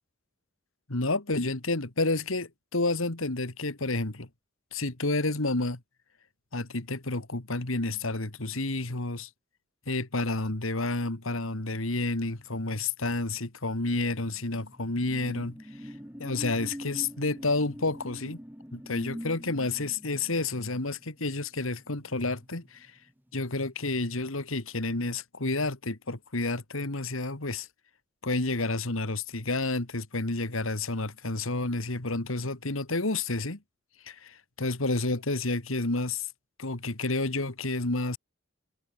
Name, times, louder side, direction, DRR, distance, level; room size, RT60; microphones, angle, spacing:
voice 1, 0.9-4.3 4.7-5.8 6.5-9.3 9.9-15.6 15.8-15.9 16.2-18.4 18.7-22.9 23.3-27.7 28.2-33.6 34.0-36.3 36.6-38.2, left 2 dB, 75° left, 2.3 m, -30 dB
sound 1, 14.1-23.1 23.5-23.7, equal, 10° right, 4.7 m, -44 dB
head